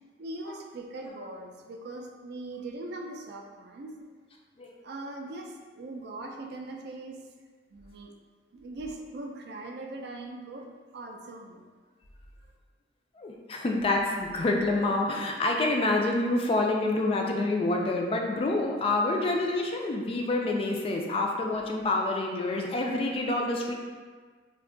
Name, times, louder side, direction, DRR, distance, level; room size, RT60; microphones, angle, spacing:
voice 1, 0.2-3.9 4.8-7.2 7.7-8.1 8.5-11.7, right 2 dB, 60° right, 2 dB, 0.3 m, -40 dB
voice 2, 13.2-23.7, left 2 dB, 30° left, 1 dB, 0.3 m, -27 dB
2.5 x 2.3 x 3.6 m, 1.5 s
head